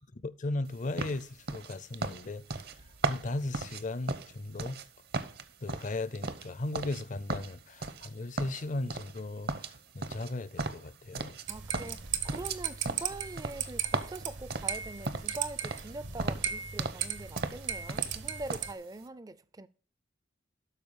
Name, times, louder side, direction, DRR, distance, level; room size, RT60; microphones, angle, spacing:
voice 1, 0.2-2.4 3.0-4.8 5.6-9.5 9.9-11.4, left 2 dB, 40° left, 0.5 m, -36 dB
sound 1, 1.0-4.9 5.1-7.0 7.3-8.1 8.4-9.2 9.5-11.5 11.7-15.4 15.6-15.9 16.2-17.1 17.4-18.2 18.5-18.7, right 3 dB, 55° right, 0.8 m, -36 dB
voice 2, 11.5-19.7, right 2 dB, 20° right, 0.4 m, -43 dB
sound 2, 11.5-18.7, right 8 dB, 75° right, 1.2 m, -37 dB
12.5 x 4.6 x 5.4 m
head